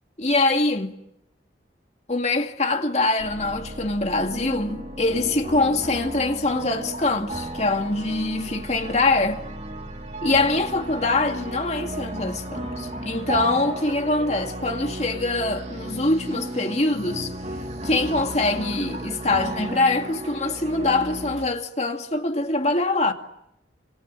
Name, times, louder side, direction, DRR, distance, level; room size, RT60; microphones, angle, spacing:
voice 1, 0.2-1.0 2.1-9.4 10.2-17.3 17.8-23.1, left 2 dB, 35° left, 2.4 m, -24 dB
sound 1, 3.2-21.5, right 1 dB, 35° right, 3.4 m, -34 dB
30.0 x 26.5 x 7.3 m
head